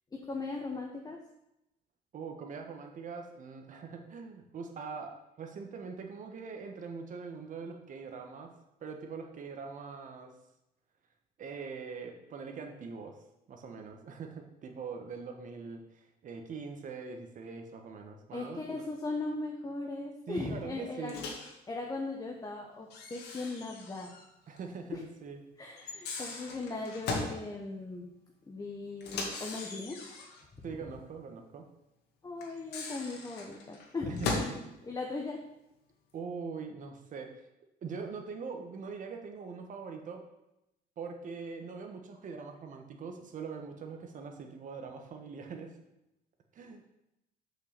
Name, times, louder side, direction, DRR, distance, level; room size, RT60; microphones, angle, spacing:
voice 1, 0.1-1.2 18.3-21.3 21.7-24.1 24.9-25.0 25.6-28.1 28.5-30.0 30.5-30.7 32.2-34.5 34.8-35.4, left 3 dB, 20° left, 0 dB, 1.1 m, -38 dB
voice 2, 2.1-8.5 8.8-10.3 11.4-13.2 13.5-18.6 20.3-21.2 24.5-25.4 25.8-25.9 30.6-31.6 34.1-34.6 36.1-37.3 37.8-40.2 41.0-45.8 46.5-46.8, right 5 dB, 50° right, 4 dB, 1.5 m, -42 dB
Microwave oven, 21.1-21.5 22.9-24.3 24.6-24.7 25.8-27.4 29.0-30.4 32.4-34.6, left 3 dB, 75° left, 1.8 m, -38 dB
6.6 x 5.7 x 6.7 m, 0.88 s
cardioid pair, 110°, 17 cm